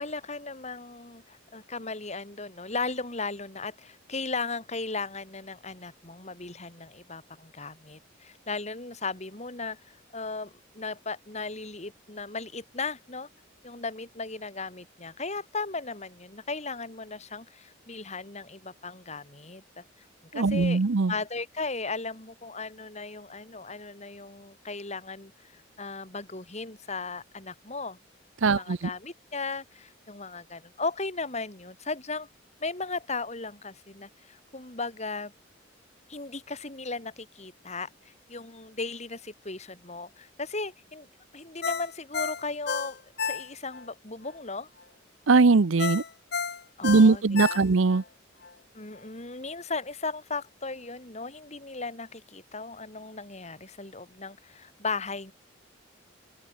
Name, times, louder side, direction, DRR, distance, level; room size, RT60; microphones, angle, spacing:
voice 1, 0.0-13.3 13.6-19.8 20.3-20.8 21.1-28.0 28.4-32.3 32.6-35.3 36.1-37.9 38.3-41.1 41.3-44.7 46.8-47.6 48.7-55.3, left 3 dB, 35° left, 3.5 m, -36 dB
voice 2, 20.3-21.1 28.4-28.9 45.3-46.0 46.8-48.0, right 4 dB, 80° right, 0.7 m, -20 dB
Ringtone, 41.6-43.9 44.3-44.4 45.8-48.0 48.4-48.5, left 5 dB, 55° left, 2.1 m, -31 dB
open air
head